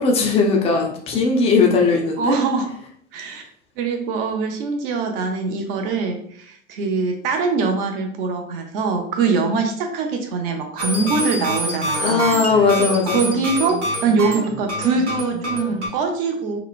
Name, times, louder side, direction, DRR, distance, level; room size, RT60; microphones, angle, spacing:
voice 1, 0.0-2.4 12.0-13.2, left 4 dB, 20° left, 1 dB, 0.3 m, -18 dB
voice 2, 2.2-2.8 3.1-3.5 3.8-12.7 13.0-16.6, right 4 dB, 50° right, 4 dB, 0.6 m, -23 dB
sound 1, 10.8-15.9, equal, 75° right, 0.9 m, -26 dB
2.9 x 2.0 x 2.4 m, 0.63 s
figure-of-eight pair, 85°, 36 cm